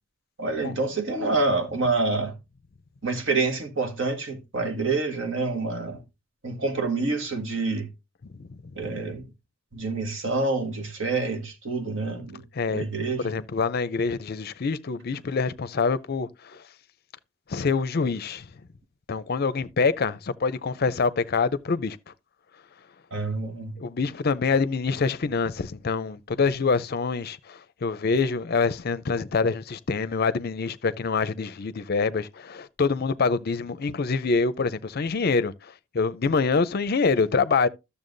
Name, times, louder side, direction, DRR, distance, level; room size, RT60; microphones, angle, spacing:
voice 1, 0.4-2.3 3.0-6.0 6.4-7.9 8.7-9.2 9.7-13.4 23.1-23.7, right 3 dB, 65° right, 1.5 m, -27 dB
voice 2, 13.2-16.3 17.5-18.4 19.1-22.0 23.8-35.5 35.9-37.7, left 4 dB, 50° left, 0.5 m, -25 dB
12.5 x 6.9 x 2.6 m
head